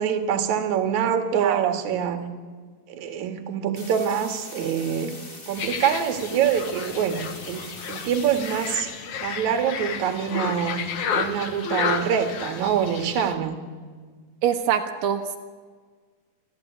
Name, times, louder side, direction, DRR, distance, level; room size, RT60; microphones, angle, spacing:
voice 1, 0.0-2.2 2.9-5.1 5.5-8.9 9.2-10.8 11.1-13.6, right 8 dB, 60° right, 7 dB, 3.1 m, -25 dB
voice 2, 1.3-1.8 14.4-15.4, right 9 dB, 85° right, 5 dB, 3.0 m, -24 dB
sound 1, 3.8-8.8, left 2 dB, 25° left, 3.7 m, -42 dB
sound 2, 5.6-13.3, left 6 dB, 65° left, 2.9 m, -31 dB
27.0 x 15.0 x 9.4 m, 1.5 s
omnidirectional pair, 3.9 m